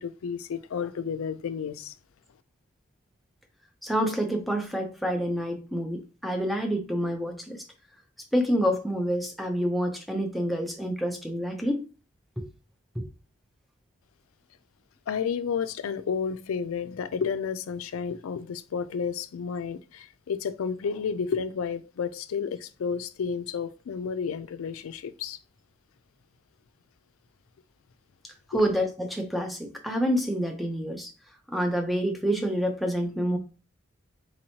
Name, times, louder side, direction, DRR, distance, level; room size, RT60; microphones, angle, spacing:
voice 1, 0.0-1.9 15.1-25.4 28.5-28.6, left 6 dB, 85° left, 0.4 m, -31 dB
voice 2, 3.8-7.6 8.3-11.9 12.4-12.5 12.9-13.1 28.2-31.1 31.5-33.4, equal, ahead, 0.5 m, -28 dB
4.1 x 3.0 x 2.7 m
head